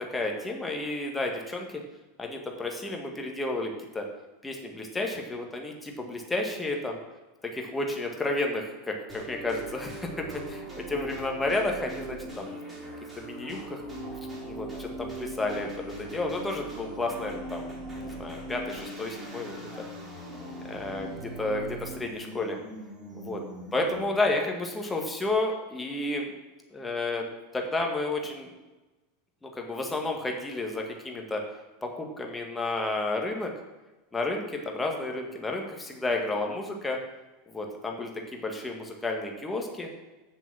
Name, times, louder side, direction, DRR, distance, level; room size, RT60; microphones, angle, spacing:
voice 1, 0.0-1.7 2.2-4.1 4.4-7.0 7.5-12.5 13.2-13.8 14.5-17.7 18.0-19.6 20.5-22.6 23.1-23.4 23.7-26.3 26.7-27.3 27.5-28.5 29.4-31.4 31.8-33.5 34.1-37.0 37.5-39.9, left 2 dB, 10° left, 1 dB, 1.8 m, -31 dB
sound 1, 9.1-24.2, right 1 dB, 20° right, 4.0 m, -40 dB
8.5 x 6.8 x 6.3 m, 1.1 s
figure-of-eight pair, 80°, 0 cm